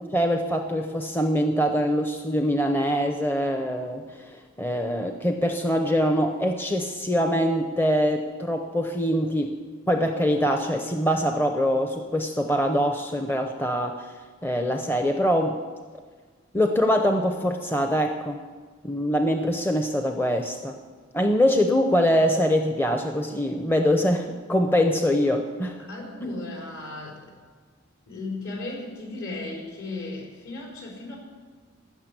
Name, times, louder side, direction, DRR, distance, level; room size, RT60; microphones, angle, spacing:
voice 1, 0.1-4.3 4.6-9.6 9.9-14.1 14.4-15.6 16.5-18.4 18.8-20.8 21.1-25.9 26.2-26.4, equal, 10° left, 4 dB, 0.7 m, -23 dB
voice 2, 25.9-27.3 28.1-31.2, left 2 dB, 65° left, -2 dB, 4.6 m, -36 dB
15.0 x 6.6 x 9.8 m, 1.5 s
head